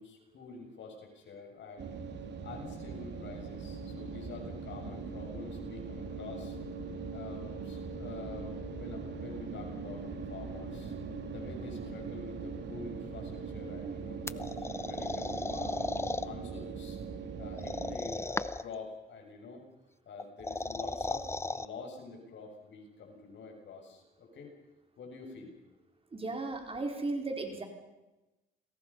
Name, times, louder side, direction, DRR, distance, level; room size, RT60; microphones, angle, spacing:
voice 1, 0.0-1.9 2.4-6.6 7.1-10.9 11.3-15.8 16.2-17.0 17.4-19.7 20.1-24.6 25.0-25.5, left 4 dB, 65° left, 2 dB, 7.4 m, -47 dB
sound 1, 1.8-18.0, right 4 dB, 60° right, 3.3 m, -41 dB
sound 2, 14.3-16.3 17.6-18.7 20.2-21.7, left 2 dB, 15° left, 0.8 m, -35 dB
voice 2, 26.1-27.6, right 2 dB, 30° right, 3 dB, 4.7 m, -35 dB
29.5 x 21.5 x 5.7 m, 1.0 s
cardioid pair, 90°, 20 cm